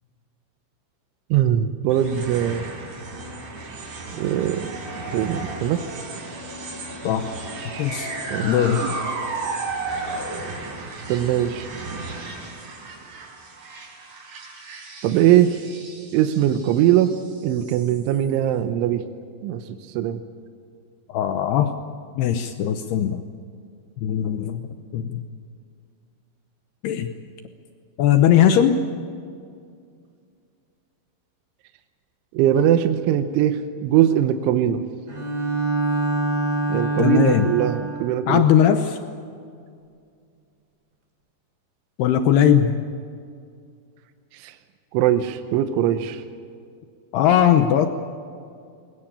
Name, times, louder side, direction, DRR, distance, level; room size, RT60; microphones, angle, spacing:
voice 1, 1.3-2.6 4.2-4.8 5.1-5.8 8.3-8.5 8.8-8.9 11.1-11.7 15.0-15.5 16.1-17.1 17.4-19.0 19.4-20.2 32.3-34.8 36.7-38.5 44.3-44.5 44.9-46.2, right 11 dB, 80° right, 8 dB, 3.1 m, -21 dB
sound 1, 1.9-18.4, right 3 dB, 55° right, 5.9 m, -34 dB
voice 2, 7.8-8.1 8.4-8.8 21.1-21.7 22.2-23.2 24.0-24.6 24.9-25.2 26.8-27.1 28.0-28.8 37.0-37.5 38.3-39.0 42.0-42.8 47.1-47.9, left 9 dB, 80° left, 8 dB, 2.3 m, -19 dB
Bowed string instrument, 35.1-38.2, right 2 dB, 20° right, 4.0 m, -25 dB
22.0 x 21.0 x 8.9 m, 2.2 s
omnidirectional pair, 5.9 m